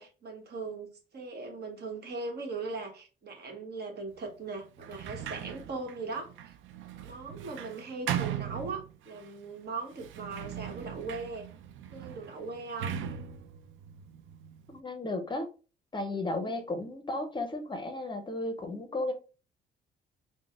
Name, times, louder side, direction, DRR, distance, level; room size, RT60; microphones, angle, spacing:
voice 1, 0.0-6.5 7.0-11.5 11.9-13.0 16.4-16.6, right 3 dB, 55° right, 1.1 m, -39 dB
Sliding door, 4.8-9.3 9.9-14.8, right 10 dB, 80° right, 0.4 m, -39 dB
voice 2, 14.7-15.5 15.9-19.1, left 2 dB, 25° left, 0.6 m, -34 dB
4.0 x 2.1 x 3.4 m
cardioid pair, 90°, 20 cm